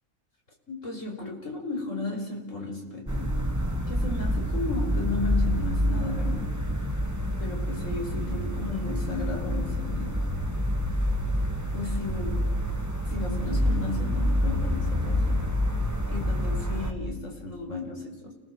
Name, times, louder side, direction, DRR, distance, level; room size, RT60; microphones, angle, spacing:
voice 1, 0.7-3.4 3.9-6.6 7.4-10.3 11.7-12.5 13.1-15.5 16.1-18.3, left 3 dB, 65° left, 1 dB, 5.2 m, -34 dB
sound 1, 3.1-16.9, equal, 10° right, 2.1 m, -27 dB
29.5 x 19.5 x 7.7 m, 1.1 s
omnidirectional pair, 1.4 m